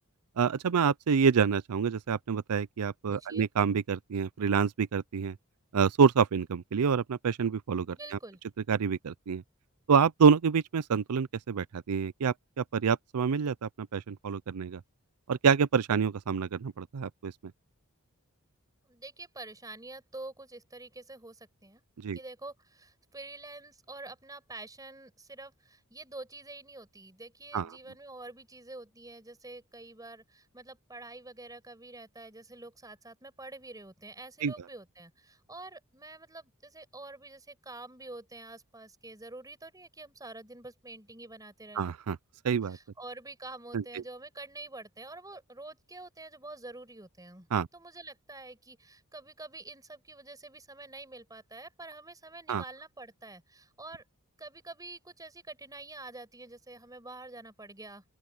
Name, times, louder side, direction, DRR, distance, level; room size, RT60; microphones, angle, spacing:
voice 1, 0.4-5.4 5.7-8.2 8.7-9.4 9.9-14.8 15.3-17.3 22.0-22.2 27.5-27.7 34.4-34.5 41.8-42.2 42.4-42.8 43.7-43.8 47.5-47.7 52.5-52.6, right 6 dB, 90° right, 0.5 m, -27 dB
voice 2, 3.1-3.5 8.0-8.4 18.8-21.8 22.1-41.9 42.6-54.0 54.4-58.0, right 2 dB, 15° right, 5.4 m, -47 dB
open air
head